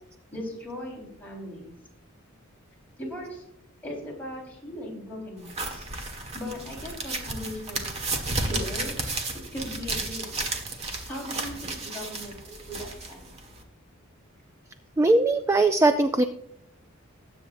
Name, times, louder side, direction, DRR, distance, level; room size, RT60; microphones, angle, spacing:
voice 1, 0.3-1.7 3.0-3.4 3.8-5.9 6.3-8.0 8.3-9.0 9.5-10.4 11.1-12.4 12.7-13.2, left 1 dB, 10° left, -4 dB, 4.3 m, -38 dB
sound 1, 5.5-13.6, right 2 dB, 30° right, 1.5 m, -33 dB
voice 2, 15.0-16.2, right 2 dB, 15° right, 8 dB, 0.4 m, -20 dB
20.0 x 8.3 x 2.6 m, 0.77 s
head